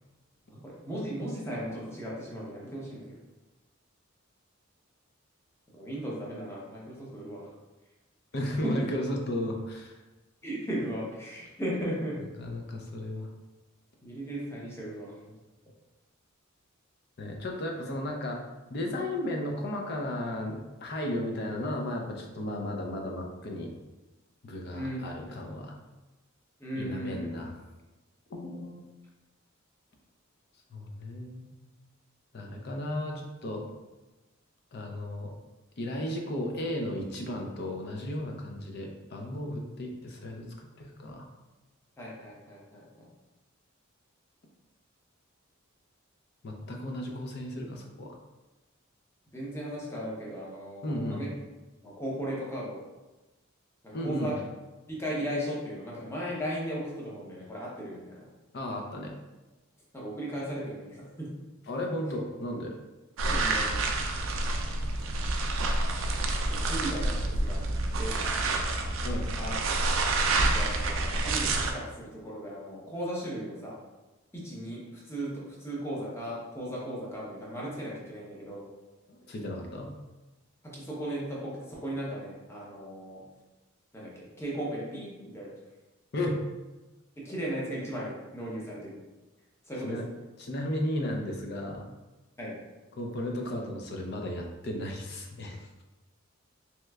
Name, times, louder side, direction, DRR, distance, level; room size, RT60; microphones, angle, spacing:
voice 1, 0.5-3.2 5.7-7.5 8.6-8.8 10.4-12.2 14.0-15.3 24.7-25.3 26.6-27.4 42.0-42.9 49.3-51.3 51.8-52.8 53.8-54.4 54.9-58.1 59.9-61.3 63.2-63.8 66.5-67.6 68.0-68.1 69.4-69.8 70.4-73.8 74.3-78.7 80.7-83.2 83.9-85.5 87.2-89.0 89.7-90.0 92.4-92.5, equal, 15° left, -5 dB, 0.7 m, -36 dB
voice 2, 8.3-9.9 12.4-13.3 17.2-18.4 18.7-23.7 24.4-25.8 26.7-27.6 28.3-28.8 30.7-31.5 32.3-33.6 34.7-35.3 35.8-41.3 46.4-48.2 50.8-51.2 53.9-54.3 58.5-59.2 61.7-62.8 69.0-69.3 79.1-79.9 86.1-86.4 89.8-90.1 90.4-91.8 93.0-95.6, left 1 dB, 55° left, 1 dB, 0.5 m, -34 dB
sound 1, 63.2-71.7, right 2 dB, 70° right, 0.4 m, -28 dB
3.2 x 2.9 x 2.3 m, 1.1 s
head